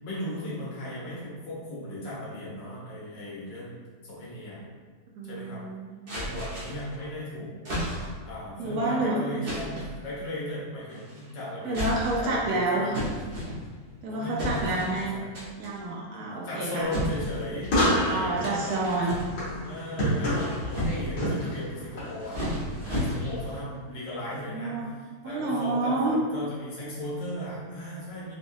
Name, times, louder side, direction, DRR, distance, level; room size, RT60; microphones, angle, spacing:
voice 1, 0.0-3.8 4.0-4.6 5.2-5.6 6.1-7.5 8.2-12.9 14.1-15.2 16.1-18.7 19.6-22.4 22.8-28.3, left 1 dB, 90° left, -7 dB, 1.6 m, -37 dB
voice 2, 5.2-6.2 8.6-9.5 11.6-13.0 14.0-15.3 15.6-16.8 18.0-19.3 24.5-24.8 25.2-26.2, right 2 dB, 70° right, -3 dB, 1.0 m, -29 dB
sound 1, 6.1-6.9 7.6-8.3 9.4-9.9 10.9-11.3 11.7-12.4 12.9-13.9 14.4-15.0 15.3-15.8 16.9-17.8 18.4-19.6 20.1-21.2 21.9-23.5, equal, 40° right, 0.9 m, -33 dB
sound 2, 17.6-23.6, equal, 75° left, 1.6 m, -30 dB
4.1 x 2.3 x 2.5 m, 1.5 s
omnidirectional pair, 1.8 m